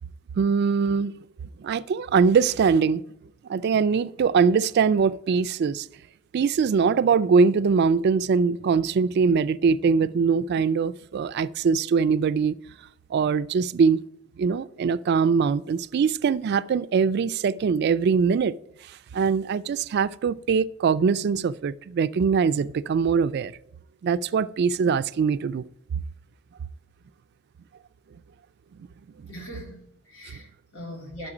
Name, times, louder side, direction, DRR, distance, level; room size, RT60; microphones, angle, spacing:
voice 1, 0.4-1.1 1.6-3.0 3.5-5.9 6.3-12.6 13.1-14.0 14.4-18.5 19.1-23.5 24.0-25.7 29.2-29.3, right 5 dB, 50° right, 0.3 m, -22 dB
voice 2, 29.3-31.3, equal, 75° left, 2.4 m, -41 dB
10.5 x 6.5 x 4.9 m
head